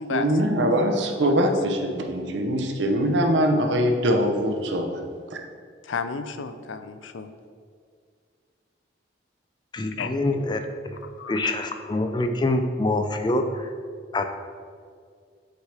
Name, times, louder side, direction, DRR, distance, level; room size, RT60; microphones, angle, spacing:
voice 1, 0.1-5.0 5.3-5.4, equal, 75° right, 3 dB, 0.8 m, -23 dB
voice 2, 5.8-7.3 10.0-10.1 11.0-11.5, left 5 dB, 85° left, 10 dB, 0.5 m, -32 dB
voice 3, 9.7-11.0 11.3-13.7 14.1-14.2, left 2 dB, 25° left, 7 dB, 0.4 m, -25 dB
7.8 x 4.5 x 3.4 m, 2.1 s
head